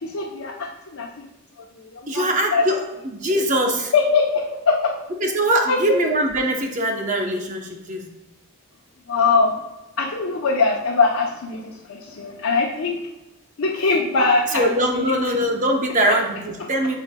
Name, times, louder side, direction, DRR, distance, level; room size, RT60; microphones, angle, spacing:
voice 1, 0.0-1.1 2.0-2.2 2.5-2.8 3.9-4.9 5.7-6.0 9.1-9.6 10.0-13.0 13.6-14.7 14.9-15.0 16.1-16.2, left 4 dB, 85° left, -1 dB, 0.7 m, -21 dB
voice 2, 2.1-3.9 5.2-8.0 14.5-16.9, right 1 dB, 35° right, 2 dB, 0.8 m, -22 dB
10.5 x 4.6 x 2.2 m, 0.99 s
head